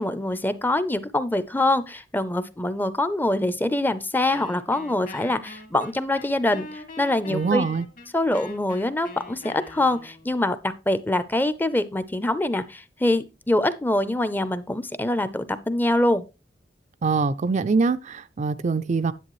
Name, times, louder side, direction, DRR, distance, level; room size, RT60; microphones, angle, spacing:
voice 1, 0.0-7.6 8.1-16.2, left 1 dB, 10° left, 0.5 m, -24 dB
Wind instrument woodwind instrument, 4.3-10.3, left 3 dB, 50° left, 1.6 m, -43 dB
voice 2, 7.3-7.8 17.0-19.1, right 4 dB, 40° right, 0.4 m, -23 dB
10.0 x 8.3 x 3.1 m
head